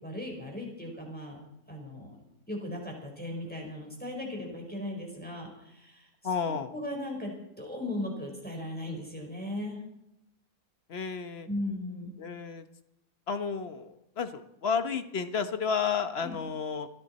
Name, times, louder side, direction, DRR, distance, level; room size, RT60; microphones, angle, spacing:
voice 1, 0.0-1.4 1.7-2.2 2.5-9.8 11.5-12.1 16.2-16.3, left 1 dB, 5° left, -1 dB, 4.5 m, -37 dB
voice 2, 6.2-6.7 10.9-11.5 12.2-12.6 13.3-16.9, left 6 dB, 45° left, 9 dB, 1.2 m, -31 dB
28.5 x 10.5 x 4.2 m, 0.84 s
omnidirectional pair, 1.7 m